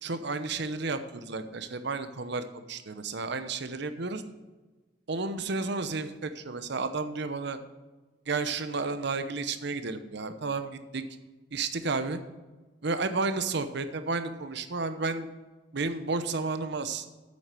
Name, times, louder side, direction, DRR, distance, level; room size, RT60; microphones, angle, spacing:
voice 1, 0.0-4.2 5.1-7.6 8.3-11.0 11.5-12.2 12.8-15.3 15.7-17.1, right 3 dB, 65° right, 10 dB, 0.9 m, -32 dB
8.6 x 7.5 x 6.8 m, 1.2 s
head